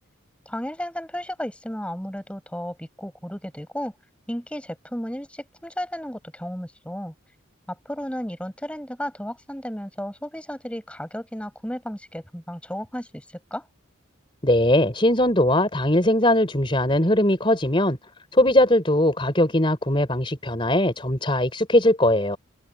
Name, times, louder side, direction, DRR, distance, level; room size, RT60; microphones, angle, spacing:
voice 1, 0.4-3.9 4.3-7.1 7.7-13.2 13.5-13.6, equal, 5° left, 6.6 m, -33 dB
voice 2, 14.4-18.0 18.3-22.4, left 1 dB, 25° left, 4.3 m, -20 dB
head